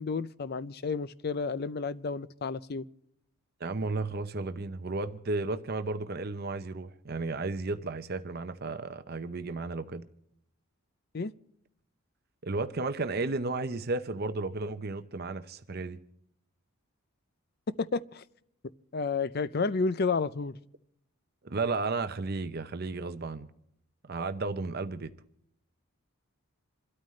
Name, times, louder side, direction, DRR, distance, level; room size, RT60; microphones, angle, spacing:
voice 1, 0.0-2.9 11.1-11.3 17.8-18.2 18.9-20.6, left 4 dB, 45° left, 0.5 m, -31 dB
voice 2, 3.6-10.0 12.4-16.0 21.4-23.5 24.1-25.1, right 3 dB, 45° right, 0.7 m, -33 dB
27.0 x 13.0 x 3.2 m
head